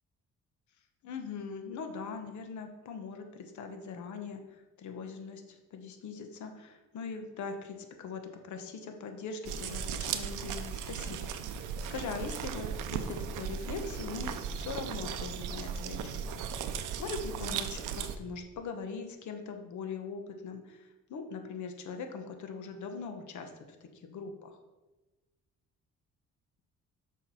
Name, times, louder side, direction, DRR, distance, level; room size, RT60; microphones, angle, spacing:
voice 1, 1.0-16.2 16.5-24.6, left 5 dB, 70° left, 5 dB, 1.1 m, -41 dB
sound 1, 9.4-18.2, right 7 dB, 90° right, 0.6 m, -37 dB
6.7 x 4.7 x 5.6 m, 1.1 s
cardioid pair, 90°, 30 cm